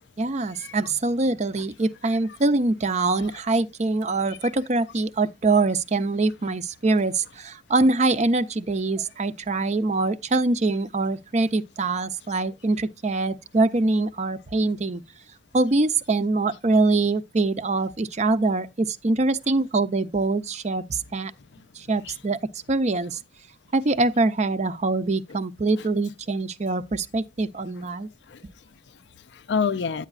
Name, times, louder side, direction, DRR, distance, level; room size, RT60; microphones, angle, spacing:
voice 1, 0.2-15.0 15.5-21.3 21.8-22.4 22.7-23.2 23.7-28.1, right 3 dB, 40° right, 0.6 m, -24 dB
voice 2, 28.3-30.1, left 5 dB, 80° left, 0.5 m, -30 dB
9.8 x 9.0 x 2.4 m
head